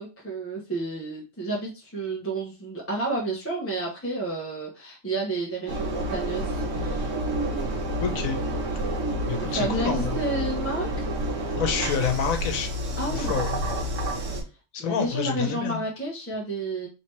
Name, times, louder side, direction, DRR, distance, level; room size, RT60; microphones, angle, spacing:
voice 1, 0.0-7.1 9.5-11.1 13.0-13.4 14.8-16.9, right 2 dB, 10° left, -4 dB, 0.9 m, -31 dB
Engine, 5.7-14.4, right 1 dB, 70° right, 1.3 m, -29 dB
voice 2, 8.0-8.4 9.3-10.2 11.6-12.7 13.1-13.5 14.7-15.8, left 6 dB, 85° left, 5 dB, 1.3 m, -28 dB
3.3 x 2.9 x 4.5 m, 0.30 s
omnidirectional pair, 1.4 m